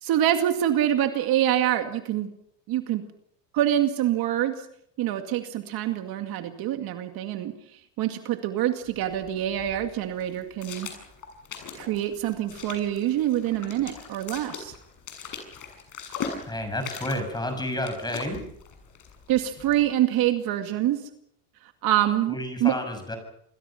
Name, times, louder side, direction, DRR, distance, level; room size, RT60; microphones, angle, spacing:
voice 1, 0.0-2.3 2.7-3.0 3.5-4.7 5.0-7.5 8.0-10.9 11.7-14.8 19.3-21.1 21.8-22.8, right 12 dB, 55° right, 6 dB, 2.3 m, -25 dB
sound 1, 8.8-19.9, left 6 dB, 45° left, 7.4 m, -41 dB
voice 2, 16.5-18.4 22.3-23.2, left 1 dB, 10° left, 7 dB, 6.6 m, -30 dB
28.0 x 21.5 x 5.9 m, 0.71 s
cardioid pair, 140°, 44 cm